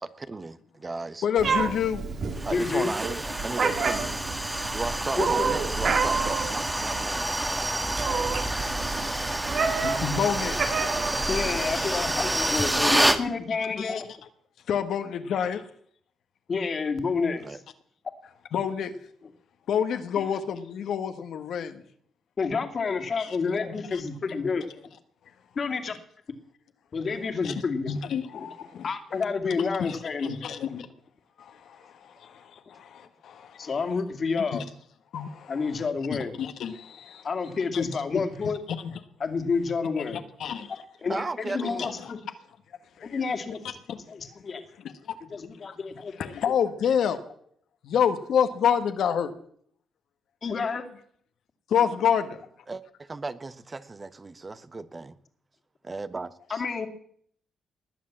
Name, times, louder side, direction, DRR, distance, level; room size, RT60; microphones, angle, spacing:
voice 1, 0.0-1.2 2.4-4.2 4.7-7.4 17.4-17.6 41.1-41.9 52.7-55.1 55.8-56.6, right 3 dB, 35° right, 13 dB, 1.0 m, -35 dB
voice 2, 1.2-2.0 8.5-8.8 9.6-10.6 11.7-12.1 13.5-14.0 14.7-15.7 18.5-19.0 19.7-21.8 23.2-23.4 23.9-24.0 27.4-27.5 27.9-28.9 29.8-30.9 31.4-33.8 34.4-34.6 35.1-35.8 36.1-37.3 37.7-38.2 38.8-38.9 40.0-40.7 41.8-42.1 43.0-43.2 43.9-44.0 44.7-45.5 46.1-47.2 47.8-49.3 51.7-52.4, left 8 dB, 75° left, 8 dB, 1.4 m, -29 dB
Meow, 1.4-13.0, right 5 dB, 60° right, 2.3 m, -30 dB
voice 3, 2.4-2.9 5.2-5.5 11.3-14.1 16.5-17.6 22.4-24.6 25.6-25.9 26.9-27.9 28.3-28.5 28.8-30.5 33.6-34.6 35.5-36.3 37.2-38.6 39.2-40.2 41.0-42.2 43.0-43.6 44.1-44.6 45.3-46.1 50.4-50.8 56.5-56.9, left 5 dB, 50° left, 7 dB, 2.5 m, -29 dB
sound 1, 2.4-13.2, right 1 dB, 15° right, 1.7 m, -28 dB
20.0 x 7.5 x 7.4 m, 0.63 s
supercardioid pair, 55°, 0 cm